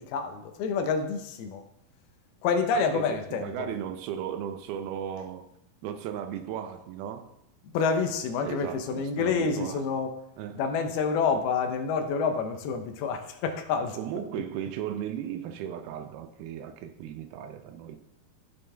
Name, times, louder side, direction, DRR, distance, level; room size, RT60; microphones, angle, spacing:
voice 1, 0.0-1.6 2.4-3.5 7.6-10.1 10.6-14.0, left 5 dB, 85° left, 2.8 m, -28 dB
voice 2, 2.7-5.5 5.8-7.3 8.4-9.8 10.4-10.6 13.9-18.0, right 9 dB, 85° right, 2.6 m, -36 dB
15.0 x 5.5 x 3.4 m
omnidirectional pair, 4.3 m